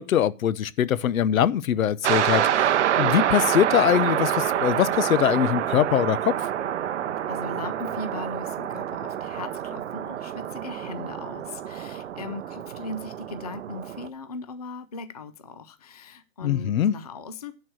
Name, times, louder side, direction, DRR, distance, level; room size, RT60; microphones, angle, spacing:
voice 1, 0.0-6.3 16.4-16.9, left 10 dB, 75° left, 0.7 m, -22 dB
sound 1, 2.0-14.1, right 10 dB, 55° right, 0.7 m, -27 dB
voice 2, 7.3-17.5, left 3 dB, 30° left, 0.4 m, -38 dB
10.5 x 4.6 x 7.7 m
hypercardioid pair, 170°, 42 cm